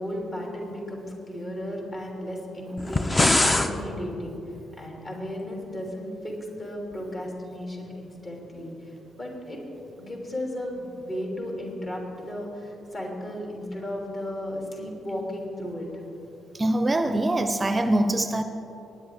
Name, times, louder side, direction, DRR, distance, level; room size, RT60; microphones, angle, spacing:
voice 1, 0.0-4.4 4.8-9.6 10.0-15.9, left 1 dB, 40° left, -1 dB, 3.3 m, -35 dB
sound 1, 2.8-3.7, left 2 dB, 25° left, 0.7 m, -21 dB
voice 2, 16.5-18.4, right 1 dB, 25° right, 9 dB, 0.6 m, -23 dB
19.0 x 9.8 x 3.8 m, 2.9 s
figure-of-eight pair, 40°, 0 cm